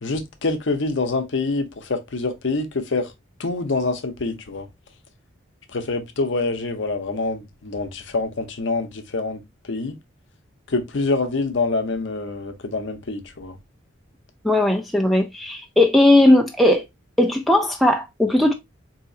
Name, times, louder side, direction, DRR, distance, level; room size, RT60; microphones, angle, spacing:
voice 1, 0.0-3.1 3.4-4.7 5.7-9.4 9.7-9.9 10.7-13.6, left 3 dB, 60° left, 0.7 m, -26 dB
voice 2, 14.4-16.8 17.2-18.5, left 1 dB, ahead, 0.3 m, -17 dB
4.0 x 2.8 x 2.6 m
head